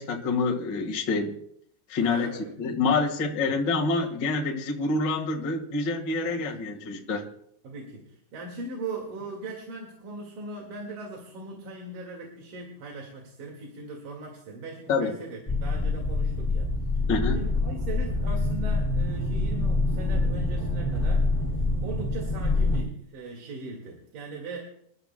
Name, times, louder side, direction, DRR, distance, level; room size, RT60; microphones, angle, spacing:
voice 1, 0.0-1.4 1.9-7.2 14.9-15.1 17.1-17.4, left 3 dB, 65° left, 2 dB, 1.1 m, -27 dB
voice 2, 2.0-2.5 3.5-3.6 6.3-6.7 7.6-16.7 17.4-21.3 21.5-24.6, right 2 dB, 60° right, -1 dB, 3.4 m, -39 dB
sound 1, 15.5-22.8, left 2 dB, 10° left, 0.8 m, -26 dB
27.5 x 12.5 x 2.2 m, 0.70 s
omnidirectional pair, 4.8 m